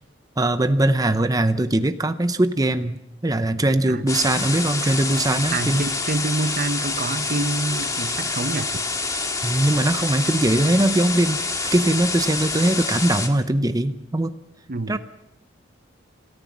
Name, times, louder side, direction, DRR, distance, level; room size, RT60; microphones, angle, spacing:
voice 1, 0.4-5.9 9.4-11.4 11.7-14.3 14.9-15.0, right 1 dB, 20° right, 0.7 m, -21 dB
sound 1, 4.1-13.3, left 3 dB, 20° left, 1.9 m, -27 dB
voice 2, 5.5-8.7 14.7-15.0, right 2 dB, 50° right, 0.9 m, -27 dB
27.0 x 14.0 x 7.4 m
head